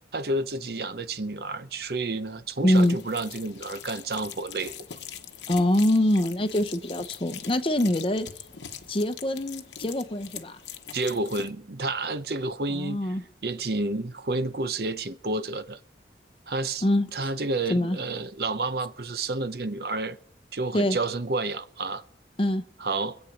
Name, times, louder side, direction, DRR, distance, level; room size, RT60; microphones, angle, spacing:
voice 1, 0.1-4.7 10.9-13.0 13.4-15.8 16.5-20.2 20.5-22.0 22.8-23.2, right 2 dB, 60° right, 0.7 m, -30 dB
voice 2, 2.6-3.0 5.5-8.3 8.9-10.6 12.7-13.2 16.8-17.1 17.7-18.0 20.7-21.0 22.4-22.6, left 1 dB, 30° left, 0.7 m, -24 dB
sound 1, 2.7-11.5, left 8 dB, 85° left, 1.0 m, -42 dB
24.0 x 8.3 x 5.2 m
head